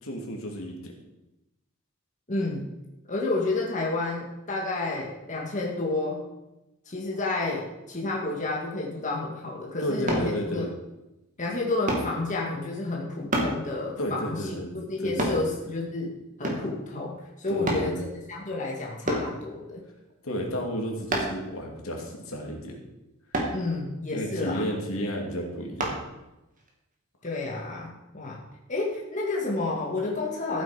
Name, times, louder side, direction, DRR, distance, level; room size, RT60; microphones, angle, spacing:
voice 1, 0.0-0.9 9.8-10.7 14.0-14.7 15.0-15.4 17.5-18.0 20.2-22.8 24.1-26.0, equal, 75° left, 0 dB, 2.7 m, -32 dB
voice 2, 2.3-2.7 3.1-6.2 6.9-10.7 11.4-19.8 23.5-24.7 27.2-28.4 28.7-30.6, left 2 dB, 35° left, -3 dB, 2.1 m, -30 dB
sound 1, 10.1-10.3 11.9-12.1 13.3-13.6 15.2-15.4 16.4-16.7 17.7-17.9 19.1-19.3 21.1-21.4 23.3-23.6 25.8-26.0 26.6-26.7, right 1 dB, 35° right, 2.6 m, -27 dB
14.0 x 8.3 x 5.1 m, 0.96 s
head